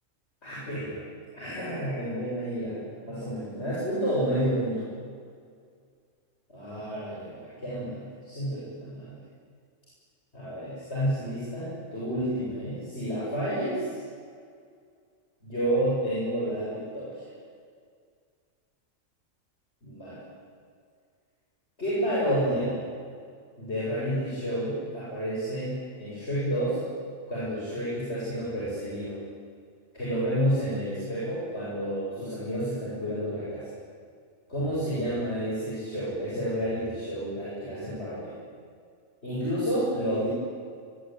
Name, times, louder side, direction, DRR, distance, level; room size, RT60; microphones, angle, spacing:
voice 1, 0.4-1.0 1.3-4.9 6.5-9.2 10.3-14.0 15.4-17.2 19.8-20.2 21.8-22.8 23.6-26.8 27.3-29.2 29.9-33.7 34.5-38.3 39.2-40.3, equal, 50° left, -8 dB, 8.5 m, -30 dB
23.5 x 22.0 x 9.6 m, 2.1 s
omnidirectional pair, 1.4 m